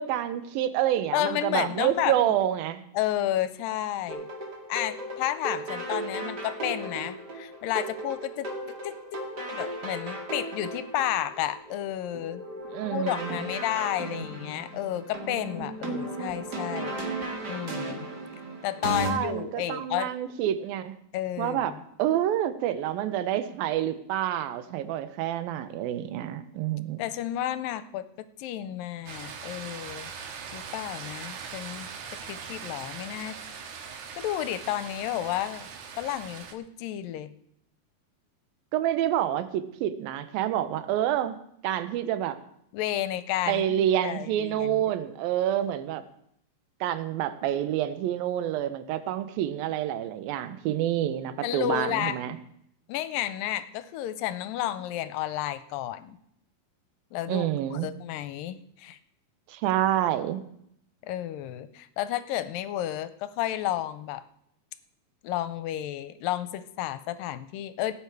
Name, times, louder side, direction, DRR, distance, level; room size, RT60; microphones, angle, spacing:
voice 1, 0.0-2.8 12.7-13.3 19.0-20.9 21.4-21.7 22.0-27.0 38.7-41.4 41.6-42.4 43.5-46.0 46.8-52.4 57.3-57.9 59.5-60.4, right 11 dB, 80° right, 12 dB, 2.6 m, -28 dB
voice 2, 1.1-2.3 2.9-4.3 4.7-8.5 8.8-9.2 9.5-12.4 12.9-16.9 17.5-18.1 18.6-20.1 21.1-21.8 27.0-30.1 30.5-33.4 34.1-35.7 36.0-37.3 42.7-43.8 44.0-44.7 51.4-52.2 52.9-56.2 57.1-59.0 61.0-64.2 65.2-67.9, left 13 dB, 80° left, 13 dB, 2.3 m, -31 dB
sound 1, 4.1-19.1, right 1 dB, 35° right, 1.8 m, -36 dB
sound 2, 29.1-36.5, right 6 dB, 65° right, 2.5 m, -41 dB
17.5 x 9.2 x 4.8 m, 0.72 s
omnidirectional pair, 4.3 m